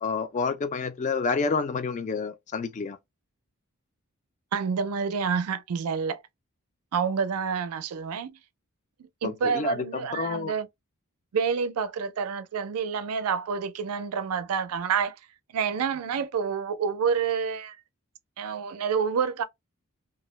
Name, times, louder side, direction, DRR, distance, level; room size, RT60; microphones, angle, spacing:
voice 1, 0.0-3.0 9.2-10.5, left 4 dB, 35° left, 0.3 m, -29 dB
voice 2, 4.5-6.2 6.9-8.4 9.0-10.7 11.3-15.2 15.5-17.8 18.4-19.4, right 6 dB, 90° right, 0.4 m, -28 dB
2.3 x 2.0 x 3.0 m
head